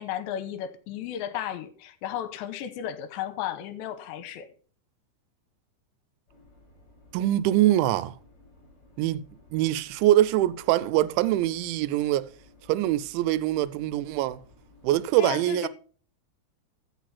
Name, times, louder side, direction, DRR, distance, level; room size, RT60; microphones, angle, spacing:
voice 1, 0.0-4.5 15.2-15.7, left 11 dB, 80° left, 3.1 m, -34 dB
sound 1, 6.3-15.0, left 2 dB, 30° left, 5.4 m, -56 dB
voice 2, 7.1-8.2 9.0-12.3 12.7-14.4 14.8-15.7, right 14 dB, 90° right, 3.0 m, -24 dB
14.5 x 6.0 x 4.2 m
omnidirectional pair, 5.2 m